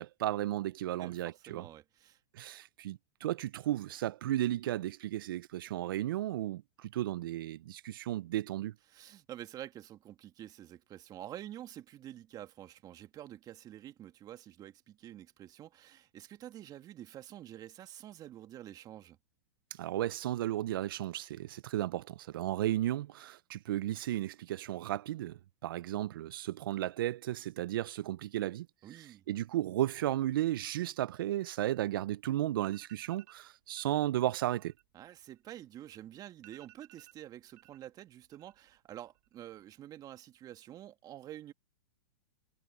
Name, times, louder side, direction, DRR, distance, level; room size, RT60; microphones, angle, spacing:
voice 1, 0.0-1.6 2.3-8.7 19.8-28.7 29.3-34.7, right 13 dB, 70° right, 0.6 m, -34 dB
voice 2, 1.0-2.2 8.9-19.2 28.8-29.2 34.9-41.5, right 12 dB, 30° right, 2.0 m, -48 dB
sound 1, 32.6-33.4 33.8-34.1 34.4-35.9 36.1-36.2 36.4-37.9 38.2-38.8 39.1-39.6, right 24 dB, 55° right, 1.3 m, -60 dB
hypercardioid pair, 115°, 12 cm